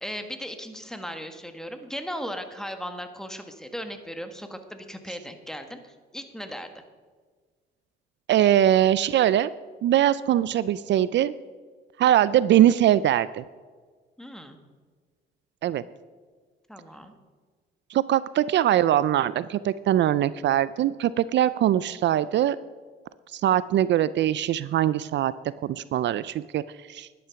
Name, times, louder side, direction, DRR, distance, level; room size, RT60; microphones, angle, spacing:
voice 1, 0.0-6.7 14.2-14.6 16.7-17.1, equal, 5° left, 7 dB, 1.5 m, -37 dB
voice 2, 8.3-9.5 9.8-11.3 12.0-13.4 15.6-15.8 17.9-22.6 23.3-25.3 25.6-26.6 26.9-27.1, right 11 dB, 65° right, 17 dB, 0.4 m, -22 dB
12.0 x 10.5 x 5.8 m, 1.5 s
cardioid pair, 90°, 20 cm